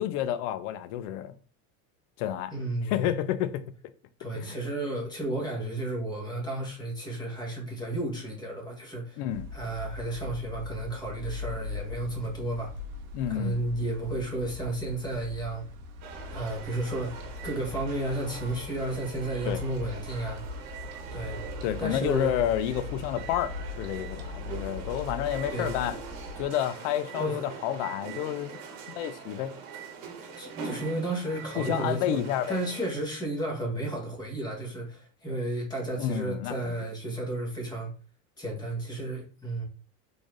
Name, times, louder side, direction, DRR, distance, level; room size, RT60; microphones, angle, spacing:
voice 1, 0.0-1.3 2.2-2.5 2.9-3.6 4.3-4.6 9.2-9.5 13.1-13.6 19.4-19.6 21.6-26.0 26.4-28.6 28.9-29.5 31.6-32.6 36.0-36.7, left 11 dB, 60° left, 0.5 m, -30 dB
voice 2, 2.5-3.0 4.2-9.2 9.5-12.7 13.3-15.6 16.3-20.4 21.1-21.4 21.8-22.4 25.5-25.7 27.2-27.4 30.4-32.2 32.5-37.9 38.4-39.6, right 2 dB, 10° left, 1.1 m, -32 dB
sound 1, 9.3-26.4, left 3 dB, 40° right, 0.7 m, -40 dB
sound 2, 16.0-32.9, right 5 dB, 55° right, 1.0 m, -43 dB
3.9 x 3.3 x 2.4 m
supercardioid pair, 135°, 41 cm